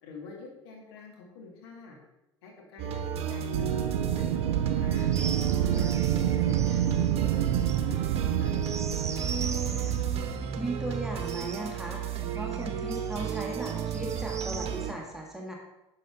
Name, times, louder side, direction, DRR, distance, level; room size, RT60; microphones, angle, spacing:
voice 1, 0.0-2.0 2.4-5.1 5.6-7.5 7.9-10.0, left 4 dB, 65° left, 1 dB, 2.1 m, -47 dB
sound 1, 2.8-14.9, right 7 dB, 45° right, 1.0 m, -33 dB
Wind, 3.5-10.5, right 11 dB, 70° right, 0.4 m, -28 dB
sound 2, 4.9-14.7, right 5 dB, 20° right, 0.8 m, -43 dB
voice 2, 5.4-6.0 10.6-12.0 12.3-15.5, right 1 dB, 5° right, -2 dB, 1.7 m, -37 dB
10.5 x 6.5 x 3.9 m, 0.95 s
figure-of-eight pair, 65°, 14 cm